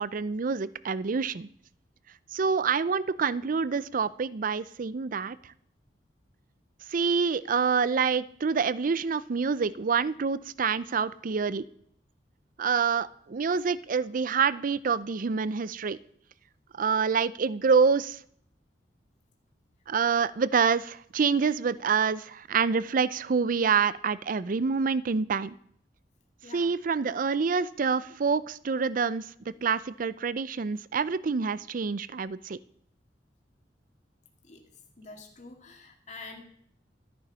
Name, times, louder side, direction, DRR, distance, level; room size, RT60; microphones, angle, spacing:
voice 1, 0.0-1.5 2.3-5.4 6.9-11.7 12.6-16.0 16.8-18.2 19.9-25.6 26.5-29.3 29.6-32.6, right 5 dB, 50° right, 18 dB, 0.5 m, -27 dB
voice 2, 35.0-36.4, left 3 dB, 40° left, 2 dB, 2.0 m, -46 dB
13.0 x 9.0 x 5.6 m, 0.66 s
head